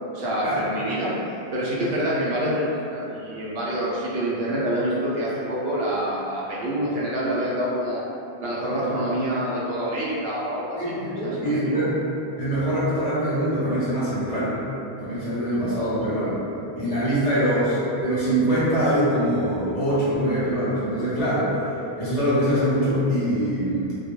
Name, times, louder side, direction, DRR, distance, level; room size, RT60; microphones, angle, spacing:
voice 1, 0.1-1.1 1.5-8.0 8.4-10.9 11.2-11.8 17.3-17.5, right 1 dB, 75° right, -7 dB, 0.8 m, -26 dB
voice 2, 10.8-12.0 12.4-14.6 15.0-16.4 16.7-21.6 22.0-23.9, equal, 45° left, -11 dB, 0.6 m, -23 dB
2.2 x 2.1 x 2.9 m, 2.8 s
omnidirectional pair, 1.1 m